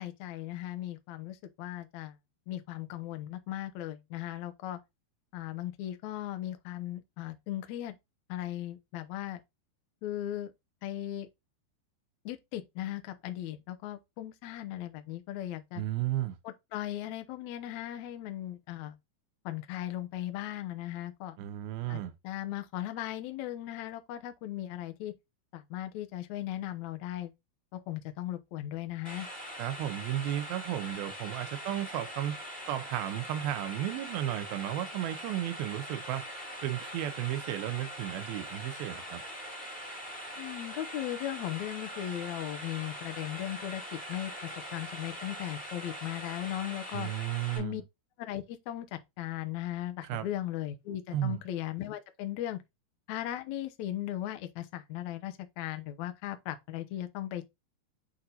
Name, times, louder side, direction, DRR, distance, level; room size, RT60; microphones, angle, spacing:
voice 1, 0.0-2.1 2.5-4.8 5.3-8.0 8.3-9.4 10.0-10.5 10.8-11.3 12.3-15.8 16.4-19.0 19.5-21.4 21.9-25.1 25.5-27.3 27.7-29.3 40.4-43.8 44.1-47.1 47.6-47.8 48.2-52.6 53.1-57.5, left 13 dB, 75° left, 1.7 m, -37 dB
voice 2, 15.8-16.4 21.4-22.1 29.6-32.4 32.7-36.3 36.6-39.2 46.9-47.8 50.0-50.3 51.1-51.4, right 13 dB, 90° right, 2.6 m, -34 dB
sound 1, 29.0-47.6, equal, 5° left, 0.9 m, -42 dB
8.5 x 2.9 x 3.9 m
omnidirectional pair, 4.3 m